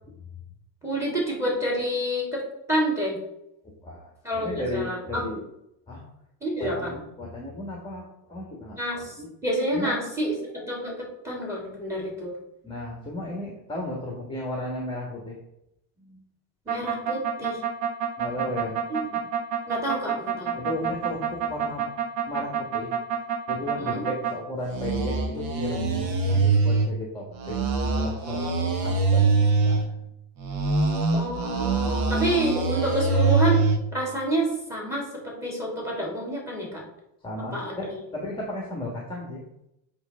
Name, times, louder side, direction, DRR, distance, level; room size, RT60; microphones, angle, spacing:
voice 1, 0.8-2.4 2.7-3.2 4.2-5.2 6.4-6.9 8.8-9.1 9.4-10.9 11.2-12.3 16.7-17.6 18.9-19.0 19.7-20.6 23.8-24.0 31.1-33.7 33.9-35.0 35.4-36.8 37.5-37.7, right 1 dB, 5° right, -2 dB, 3.2 m, -28 dB
voice 2, 3.8-5.5 5.9-6.0 6.6-9.3 9.7-10.0 12.6-15.4 16.0-16.2 18.2-18.8 20.5-21.9 22.3-22.9 23.5-30.0 31.8-32.1 37.2-39.4, left 1 dB, 10° left, -1 dB, 1.6 m, -35 dB
sound 1, 16.7-24.3 24.7-26.9 27.3-29.9 30.4-33.8, right 4 dB, 45° right, 1.5 m, -24 dB
7.9 x 3.5 x 6.5 m, 0.83 s
cardioid pair, 140°, 47 cm